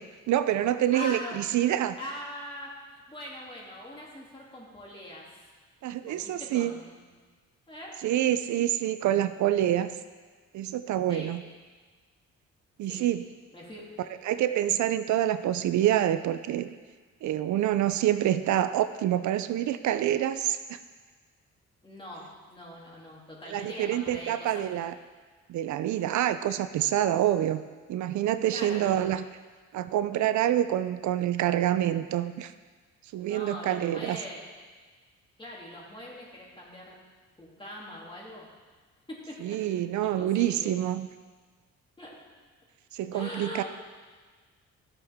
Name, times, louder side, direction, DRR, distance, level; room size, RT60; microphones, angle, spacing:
voice 1, 0.3-2.0 5.8-6.8 8.0-9.9 10.5-11.4 12.8-13.2 14.2-16.7 17.2-20.8 23.5-24.9 25.5-27.6 27.9-29.2 29.7-32.5 33.1-34.2 39.4-41.1 42.9-43.6, right 12 dB, 70° right, 11 dB, 0.5 m, -27 dB
voice 2, 0.9-1.4 2.0-5.4 6.0-7.0 7.7-8.0 11.1-11.3 12.9-13.0 13.5-13.9 21.8-24.6 28.5-29.0 33.2-34.5 35.4-37.0 37.4-38.5 39.1-39.6 40.0-40.7 42.0-42.2 43.1-43.6, left 1 dB, 15° left, -5 dB, 2.8 m, -42 dB
14.0 x 6.5 x 3.6 m, 1.4 s
cardioid pair, 90°, 30 cm